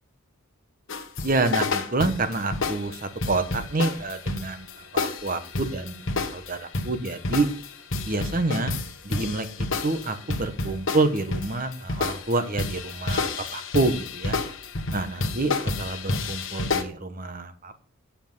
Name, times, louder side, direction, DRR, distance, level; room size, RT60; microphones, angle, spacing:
sound 1, 0.9-16.8, left 3 dB, 60° left, 1.3 m, -30 dB
voice 1, 1.2-4.7 5.0-7.5 8.0-8.7 9.0-14.4 14.9-15.5 15.8-17.8, right 2 dB, 40° right, 9 dB, 1.1 m, -28 dB
9.7 x 7.2 x 5.4 m, 0.43 s
head